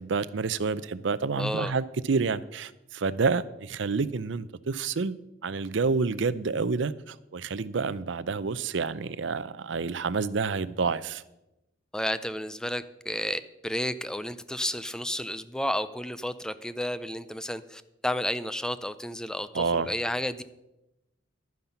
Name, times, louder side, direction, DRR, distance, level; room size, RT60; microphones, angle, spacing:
voice 1, 0.0-5.2 5.4-11.2 19.5-19.9, right 4 dB, 70° right, 0.6 m, -28 dB
voice 2, 1.4-1.7 11.9-20.4, left 1 dB, 5° left, 0.5 m, -32 dB
12.0 x 9.5 x 5.7 m
head